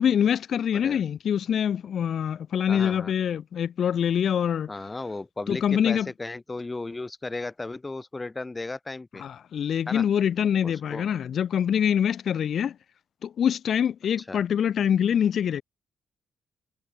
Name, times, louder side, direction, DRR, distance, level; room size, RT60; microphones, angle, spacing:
voice 1, 0.0-4.7 5.5-6.1 9.2-12.8 13.2-15.6, left 8 dB, 60° left, 0.7 m, -25 dB
voice 2, 2.7-3.1 4.7-9.2 9.9-10.0 10.6-11.1 14.3-14.4, left 2 dB, 20° left, 0.8 m, -35 dB
cardioid pair, 90°, 0 cm